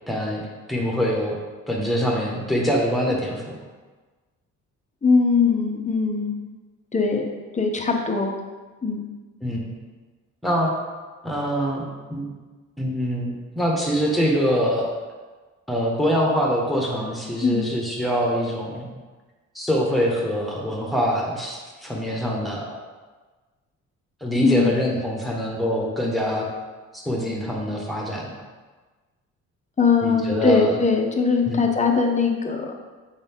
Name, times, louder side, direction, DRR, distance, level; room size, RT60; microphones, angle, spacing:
voice 1, 0.1-0.4 0.7-1.4 1.7-3.6 9.4-9.7 10.4-10.7 11.2-12.3 12.8-15.0 15.7-18.8 19.5-22.8 24.2-26.5 26.9-28.3 30.0-30.8 31.4-31.6, equal, ahead, -2 dB, 1.5 m, -24 dB
voice 2, 5.0-6.4 6.9-8.3 8.8-9.0 17.4-17.7 24.4-24.7 29.8-32.8, left 4 dB, 25° left, 2 dB, 0.9 m, -21 dB
7.0 x 4.0 x 3.7 m, 1.3 s
cardioid pair, 90°, 30 cm